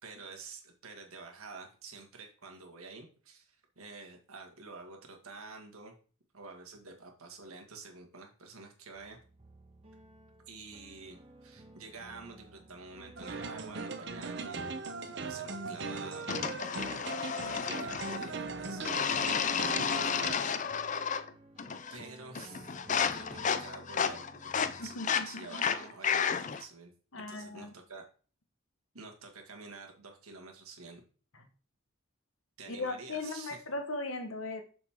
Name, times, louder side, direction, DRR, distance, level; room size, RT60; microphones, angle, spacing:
voice 1, 0.0-6.0 6.3-9.2 10.5-20.9 21.9-22.7 23.1-28.0 28.9-31.0 32.6-33.6, right 4 dB, 85° right, 2.0 m, -49 dB
sound 1, 8.9-25.0, right 1 dB, 25° right, 1.4 m, -56 dB
sound 2, 13.2-20.4, right 3 dB, 55° right, 0.9 m, -39 dB
sound 3, 16.3-18.3 18.9-21.3 21.6-22.0 22.4-26.6, left 7 dB, 35° left, 0.5 m, -32 dB
voice 2, 24.8-25.7 27.1-27.7 31.3-31.4 32.7-34.6, left 2 dB, 70° left, 1.4 m, -38 dB
7.4 x 6.8 x 3.7 m
head